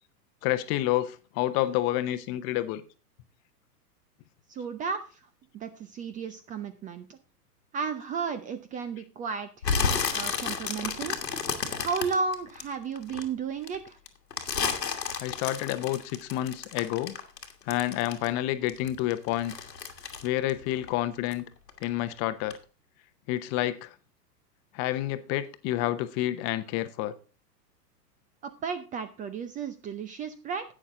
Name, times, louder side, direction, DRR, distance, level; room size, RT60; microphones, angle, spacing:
voice 1, 0.4-2.8 15.2-17.1 17.7-19.5 20.2-21.4 21.8-22.6 23.3-23.9 24.7-27.1, left 14 dB, 30° left, 12 dB, 0.8 m, -29 dB
voice 2, 4.5-5.2 5.5-7.2 7.7-9.5 10.1-11.2 11.8-14.0 28.4-30.6, right 5 dB, 15° right, 11 dB, 0.5 m, -33 dB
sound 1, 9.6-13.2 13.6-18.4 18.7-21.4 21.7-22.1 22.5-22.6, left 5 dB, 90° left, 1.7 m, -31 dB
11.0 x 8.7 x 3.7 m, 0.35 s
hypercardioid pair, 110°, 48 cm